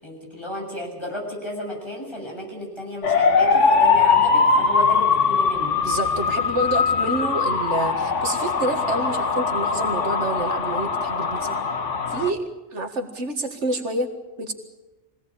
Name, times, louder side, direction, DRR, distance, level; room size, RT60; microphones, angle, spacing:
voice 1, 0.0-5.8, left 1 dB, 20° left, -2 dB, 7.3 m, -33 dB
sound 1, 3.0-12.3, left 5 dB, 90° left, 1.7 m, -21 dB
voice 2, 5.8-11.6 12.1-14.1 14.4-14.5, right 2 dB, 75° right, 5 dB, 2.2 m, -28 dB
23.5 x 18.0 x 8.7 m, 1.1 s
omnidirectional pair, 1.2 m